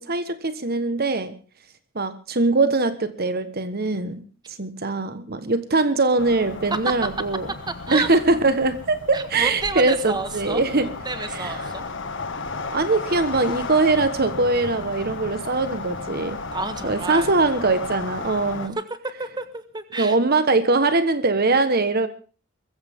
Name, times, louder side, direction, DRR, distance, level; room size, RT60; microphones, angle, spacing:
voice 1, 0.0-1.3 1.9-4.2 4.5-7.5 7.9-10.9 11.3-11.6 12.7-16.4 16.8-18.8 20.0-22.1, right 3 dB, 45° right, 11 dB, 1.3 m, -22 dB
sound 1, 6.2-18.7, left 3 dB, 55° left, 1.9 m, -34 dB
voice 2, 9.1-11.8 16.5-17.3 18.8-18.9 19.2-20.2, right 3 dB, 20° right, 9 dB, 1.6 m, -29 dB
23.0 x 15.0 x 3.7 m, 0.39 s
head